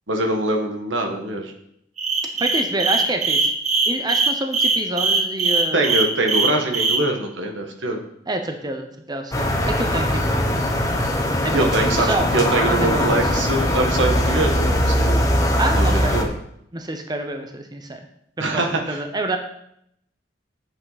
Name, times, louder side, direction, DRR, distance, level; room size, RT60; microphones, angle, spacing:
voice 1, 0.1-1.5 5.7-8.0 11.5-15.2 15.8-16.3 18.4-19.0, right 2 dB, 85° right, 3 dB, 1.5 m, -23 dB
sound 1, 2.0-7.0, right 4 dB, 40° right, 1.3 m, -20 dB
voice 2, 2.4-3.5 3.9-5.9 8.3-10.5 11.4-13.5 15.6-16.2 16.7-18.1 18.4-19.4, right 2 dB, 20° right, 5 dB, 0.8 m, -27 dB
sound 2, 9.3-16.2, left 1 dB, 20° left, 1.2 m, -20 dB
8.5 x 8.2 x 4.1 m, 0.73 s
head